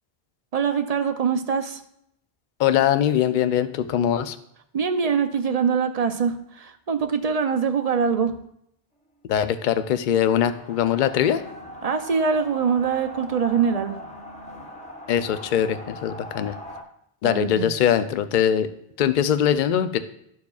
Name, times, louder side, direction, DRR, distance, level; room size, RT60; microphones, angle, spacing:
voice 1, 0.5-1.8 4.7-8.4 11.8-14.0 17.2-17.7, right 6 dB, 50° right, 7 dB, 0.5 m, -23 dB
voice 2, 2.6-4.4 9.3-11.4 15.1-16.6 17.2-18.7 19.0-20.0, left 9 dB, 60° left, 11 dB, 0.6 m, -22 dB
sound 1, 10.3-16.8, left 1 dB, 10° left, 0.8 m, -40 dB
13.0 x 4.7 x 2.4 m, 0.75 s
omnidirectional pair, 1.0 m